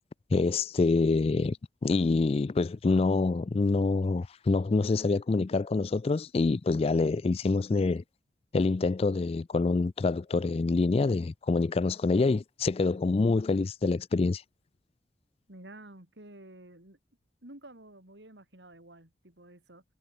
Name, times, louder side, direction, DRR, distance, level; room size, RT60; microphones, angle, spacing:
voice 1, 0.3-1.6 1.8-8.0 8.5-14.4, left 3 dB, 35° left, 0.3 m, -26 dB
voice 2, 15.5-17.0 17.4-19.8, right 1 dB, 70° right, 4.0 m, -50 dB
head